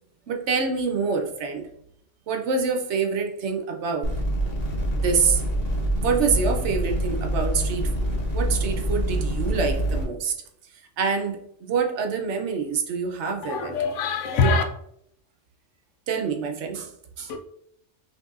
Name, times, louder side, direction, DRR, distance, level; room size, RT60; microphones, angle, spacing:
voice 1, 0.3-1.7 2.3-4.1 5.0-5.4 6.0-8.1 8.3-10.4 10.7-13.8 14.4-14.6 16.1-17.3, right 5 dB, 70° right, 3 dB, 0.9 m, -26 dB
sound 1, 4.0-10.0, right 1 dB, 55° left, 1.2 m, -26 dB
voice 2, 13.4-14.6 17.3-17.4, left 4 dB, 85° left, 6 dB, 0.9 m, -23 dB
5.6 x 2.6 x 2.4 m, 0.71 s
omnidirectional pair, 1.2 m